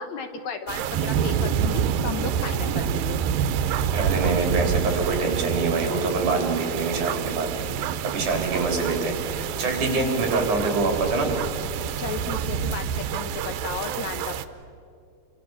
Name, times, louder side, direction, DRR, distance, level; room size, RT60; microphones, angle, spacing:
voice 1, 0.0-3.2 12.0-14.3, left 5 dB, 65° left, 7 dB, 2.1 m, -34 dB
sound 1, 0.7-14.5, right 8 dB, 90° right, 2.6 m, -27 dB
voice 2, 3.9-7.7 8.0-11.3, right 3 dB, 60° right, 2 dB, 5.2 m, -25 dB
27.0 x 26.0 x 7.2 m, 2.4 s
omnidirectional pair, 4.0 m